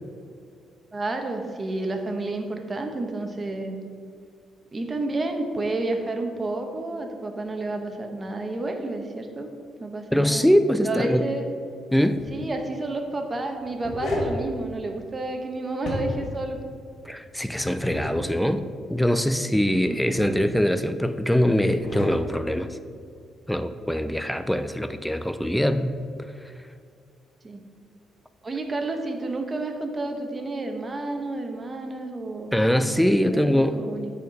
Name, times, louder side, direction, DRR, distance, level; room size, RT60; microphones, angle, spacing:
voice 1, 0.9-3.8 4.7-9.5 9.8-10.5 10.8-11.5 12.3-16.6 19.7-20.1 27.4-27.6 28.4-32.6 33.3-34.1, right 2 dB, 30° right, 4 dB, 1.0 m, -30 dB
voice 2, 10.1-11.2 11.9-12.2 17.0-22.7 23.5-25.9 32.5-33.8, equal, 5° left, 10 dB, 0.4 m, -23 dB
sound 1, 12.0-12.3 13.5-14.4 15.7-16.3 17.6-18.1 19.8-20.5 21.6-22.2, left 1 dB, 55° left, 2.1 m, -32 dB
9.1 x 4.4 x 5.2 m, 2.2 s
cardioid pair, 90°, 0 cm